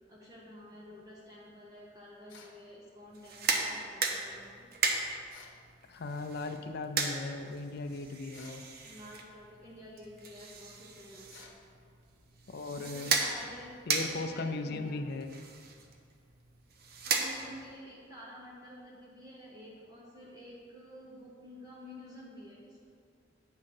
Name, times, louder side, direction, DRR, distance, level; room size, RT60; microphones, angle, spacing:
voice 1, 0.0-4.7 8.9-11.4 12.8-15.0 17.1-22.8, equal, 20° right, -5 dB, 0.8 m, -50 dB
sound 1, 2.3-2.6 5.3-5.6 8.3-8.7 11.3-11.6, left 5 dB, 80° left, 0.9 m, -54 dB
sound 2, 3.1-17.8, right 4 dB, 55° right, 0.7 m, -36 dB
voice 2, 5.9-8.6 12.5-13.1 13.9-15.3, left 3 dB, 55° left, 8 dB, 0.5 m, -37 dB
8.6 x 3.8 x 5.9 m, 2.2 s
head